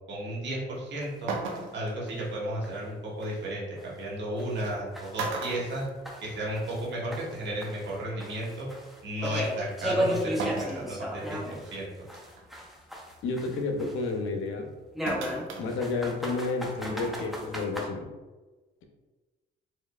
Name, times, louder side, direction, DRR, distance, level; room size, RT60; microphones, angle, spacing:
voice 1, 0.1-1.3 1.7-5.8 6.2-8.7 9.0-11.4 11.7-11.9, right 1 dB, 65° right, -5 dB, 1.4 m, -33 dB
sound 1, 0.7-0.8 1.3-1.9 3.5-3.6 4.6-4.8 5.1-6.5 6.9-7.0 8.2-8.3 10.4-10.9 11.4-11.5 12.1-12.4 15.1-15.7 16.0-16.1, right 4 dB, 80° right, 0.6 m, -35 dB
sound 2, 1.0-1.1 1.5-1.6 2.1-2.2 2.6-2.7 3.2-3.3 3.8-3.9 4.4-6.9 7.1-11.8 12.1-14.1 15.0-17.9, equal, ahead, 0.7 m, -35 dB
voice 2, 13.2-14.7 15.6-18.1, left 3 dB, 80° left, 3 dB, 0.7 m, -31 dB
4.5 x 2.6 x 2.3 m, 1.2 s
cardioid pair, 90°, 20 cm